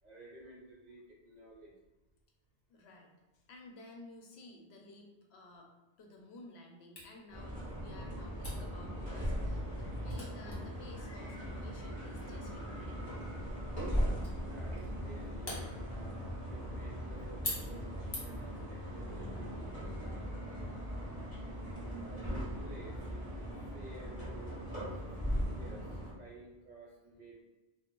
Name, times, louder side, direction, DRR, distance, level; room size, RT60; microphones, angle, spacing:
voice 1, 0.0-1.7 14.4-20.3 22.0-23.5 23.7-24.9 25.3-27.4, right 2 dB, 50° right, -4 dB, 0.6 m, -53 dB
voice 2, 2.7-3.1 3.5-13.1, left 2 dB, 85° left, 1 dB, 0.9 m, -54 dB
Camera, 7.0-18.6, left 1 dB, 50° left, 1.1 m, -47 dB
sound 1, 7.3-26.1, equal, 10° right, 1.2 m, -39 dB
2.4 x 2.2 x 3.7 m, 1.1 s
omnidirectional pair, 1.1 m